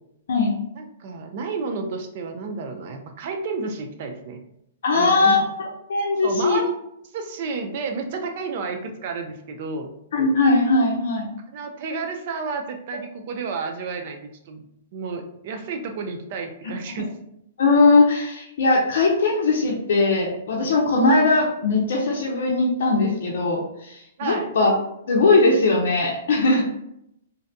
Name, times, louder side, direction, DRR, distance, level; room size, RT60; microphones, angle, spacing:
voice 1, 0.7-4.4 4.9-5.4 6.2-6.7 7.1-9.9 11.5-14.6 14.9-17.1 24.2-24.5, right 4 dB, 50° right, 5 dB, 0.4 m, -31 dB
voice 2, 4.8-5.4 5.9-6.6 10.1-11.3 17.6-24.7 25.1-26.6, left 3 dB, 70° left, -3 dB, 0.5 m, -19 dB
2.6 x 2.1 x 2.6 m, 0.77 s
hypercardioid pair, 150°, 0 cm